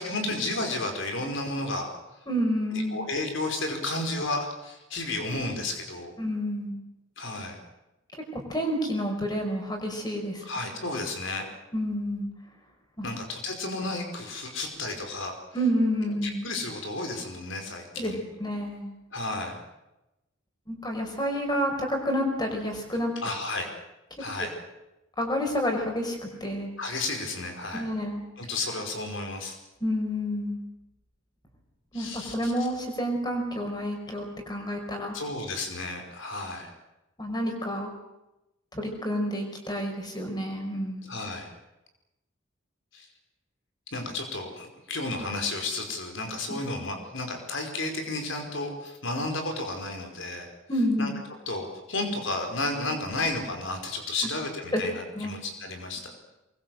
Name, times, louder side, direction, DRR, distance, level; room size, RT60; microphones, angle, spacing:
voice 1, 0.0-1.9 2.9-6.1 7.2-7.6 10.4-11.5 13.0-15.3 16.2-18.2 19.1-19.6 23.2-23.7 24.2-24.5 26.8-27.9 28.4-29.6 31.9-32.5 35.1-36.7 41.0-41.5 42.9-43.1 43.9-50.5 51.0-51.1 51.5-56.1, left 2 dB, 65° left, 4 dB, 5.2 m, -32 dB
voice 2, 2.3-3.0 6.2-6.8 8.3-10.4 11.7-12.3 13.0-13.1 15.5-16.4 18.0-18.1 18.4-18.9 20.7-23.1 25.2-26.7 27.7-28.2 29.8-30.6 31.9-35.2 37.2-37.9 38.7-41.1 46.5-46.6 50.7-51.1 54.7-54.8 55.1-55.3, equal, 20° left, 3 dB, 5.2 m, -29 dB
23.5 x 21.5 x 7.9 m, 0.94 s
head